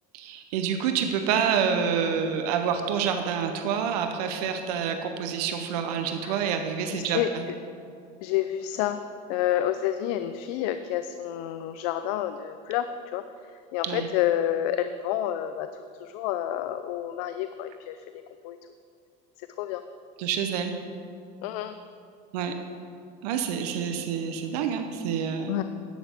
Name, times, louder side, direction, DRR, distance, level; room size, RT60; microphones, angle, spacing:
voice 1, 0.1-7.4 13.8-14.1 20.2-20.7 22.3-22.5 23.2-25.6, right 7 dB, 85° right, 6 dB, 0.8 m, -27 dB
voice 2, 6.9-7.3 8.2-9.0 9.3-12.9 13.1-13.2 13.7-15.7 16.0-18.0 18.4-18.6 19.6-19.8 21.4-21.7 25.5-25.6, left 12 dB, 80° left, 10 dB, 0.4 m, -29 dB
11.0 x 8.8 x 3.5 m, 2.3 s
supercardioid pair, 110°, 20 cm